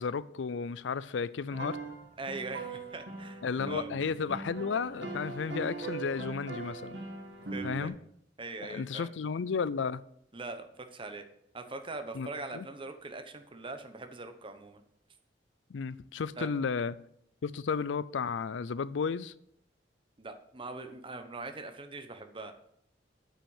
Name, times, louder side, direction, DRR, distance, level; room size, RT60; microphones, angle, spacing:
voice 1, 0.0-1.8 3.4-7.0 7.6-8.0 8.7-10.0 12.1-12.7 15.7-17.0 17.4-19.3, left 5 dB, 90° left, 0.4 m, -33 dB
sound 1, 1.5-7.9, right 3 dB, 70° right, 1.8 m, -40 dB
voice 2, 2.2-3.9 7.5-7.9 8.4-9.1 10.3-11.2 11.5-14.8 16.4-16.5 20.2-22.5, right 3 dB, 30° right, 1.0 m, -42 dB
8.6 x 5.7 x 7.1 m
head